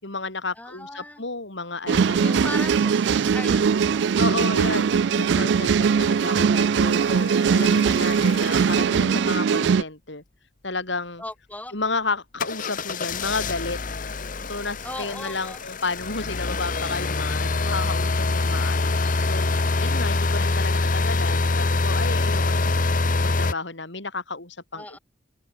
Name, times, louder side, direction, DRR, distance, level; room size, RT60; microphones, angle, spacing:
voice 1, 0.0-2.7 4.2-10.2 10.6-11.2 11.7-13.8 14.4-19.5 19.8-22.8 23.2-25.0, left 3 dB, 65° left, 3.9 m, -32 dB
voice 2, 0.6-1.2 2.2-4.2 11.2-11.7 14.8-15.6 24.7-25.0, left 1 dB, 10° left, 3.5 m, -37 dB
sound 1, 1.9-9.8, right 6 dB, 60° right, 0.3 m, -21 dB
sound 2, 6.9-8.9 12.4-23.5, left 3 dB, 45° left, 1.0 m, -25 dB
head